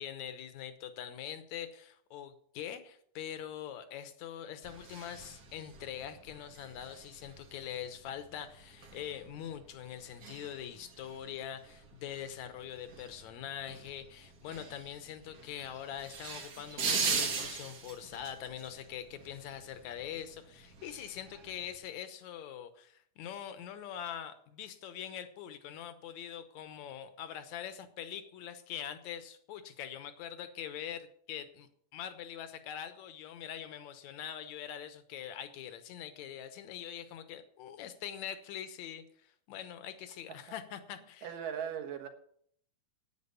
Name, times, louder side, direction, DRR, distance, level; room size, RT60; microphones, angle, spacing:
voice 1, 0.0-41.3, left 9 dB, 70° left, 10 dB, 2.2 m, -43 dB
sound 1, 4.6-21.8, right 5 dB, 50° right, 1.2 m, -42 dB
voice 2, 41.2-42.1, right 8 dB, 85° right, 6 dB, 3.0 m, -39 dB
9.7 x 9.2 x 6.9 m, 0.64 s
omnidirectional pair, 3.7 m